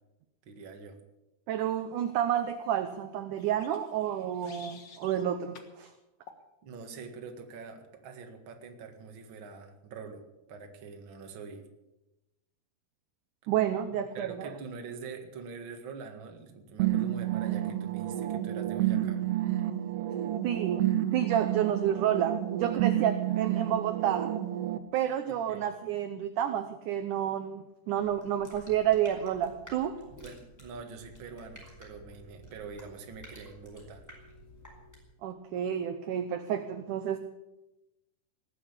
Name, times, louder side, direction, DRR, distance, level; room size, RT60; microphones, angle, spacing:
voice 1, 0.4-1.0 6.6-10.2 10.5-11.6 14.1-19.2 25.2-25.6 30.2-34.0, right 5 dB, 45° right, 5 dB, 1.9 m, -44 dB
voice 2, 1.5-5.9 13.5-14.5 20.4-20.9 21.1-24.3 24.9-30.0 35.2-37.2, right 10 dB, 75° right, 9 dB, 1.9 m, -30 dB
sound 1, 3.4-5.2 5.5-5.7 6.3-6.5, left 5 dB, 75° left, 1.0 m, -52 dB
sound 2, 16.8-24.8, right 13 dB, 90° right, 3.0 m, -30 dB
sound 3, 27.9-35.2, equal, 5° left, 4.5 m, -52 dB
19.0 x 8.9 x 8.2 m, 0.98 s
omnidirectional pair, 4.5 m